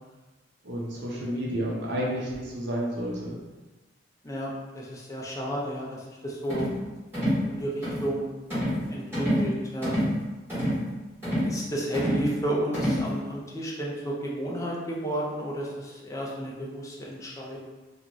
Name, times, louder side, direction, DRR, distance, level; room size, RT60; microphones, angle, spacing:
voice 1, 0.6-3.4, equal, 70° right, -4 dB, 0.7 m, -31 dB
voice 2, 4.2-6.7 7.4-8.3 8.9-10.0 11.4-17.6, right 1 dB, 15° left, -4 dB, 0.4 m, -32 dB
sound 1, 6.5-6.8 7.1-7.4 7.8-8.1 8.5-8.8 9.1-9.5 9.8-10.1 10.5-10.8 11.2-11.5 11.9-12.3 12.7-13.1, equal, 15° right, 1.3 m, -26 dB
2.4 x 2.4 x 2.9 m, 1.2 s
head